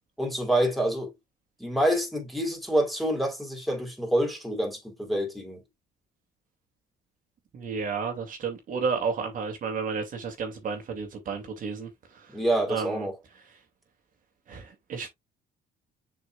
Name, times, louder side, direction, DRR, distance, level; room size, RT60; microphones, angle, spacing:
voice 1, 0.2-1.1 1.6-5.6 12.3-13.1, right 1 dB, ahead, 3.5 m, -27 dB
voice 2, 7.5-12.4 12.7-13.1 14.5-15.1, right 5 dB, 50° right, 2.4 m, -32 dB
7.0 x 5.9 x 2.3 m
cardioid pair, 110°, 17 cm